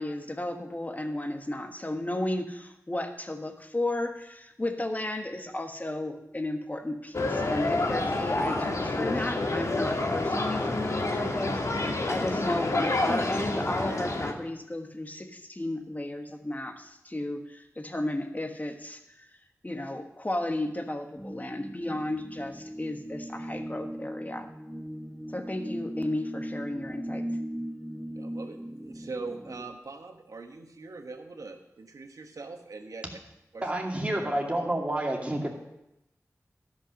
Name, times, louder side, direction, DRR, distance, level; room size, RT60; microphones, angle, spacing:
voice 1, 0.0-11.6 12.0-19.2 19.6-24.5 25.3-27.2, left 1 dB, 30° left, 5 dB, 1.3 m, -33 dB
sound 1, 7.1-14.3, left 2 dB, 65° left, 1.3 m, -28 dB
sound 2, 21.1-29.8, equal, ahead, 0.5 m, -38 dB
voice 2, 28.2-33.0 33.5-33.7, right 3 dB, 80° right, 5 dB, 1.1 m, -42 dB
voice 3, 33.6-35.5, right 1 dB, 20° right, -1 dB, 2.5 m, -29 dB
13.0 x 5.6 x 6.4 m, 0.87 s
wide cardioid pair, 50°, 6 cm